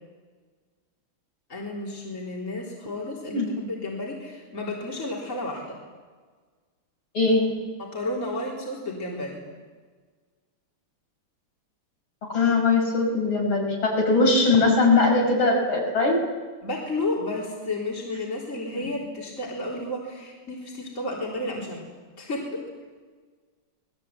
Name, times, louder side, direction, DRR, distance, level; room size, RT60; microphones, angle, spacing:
voice 1, 1.5-5.8 7.8-9.4 16.6-21.8 22.2-22.6, left 2 dB, 35° left, -2 dB, 4.2 m, -32 dB
voice 2, 7.1-7.6 12.3-16.2, left 3 dB, 70° left, 0 dB, 5.9 m, -21 dB
27.5 x 20.5 x 8.5 m, 1.5 s
omnidirectional pair, 2.3 m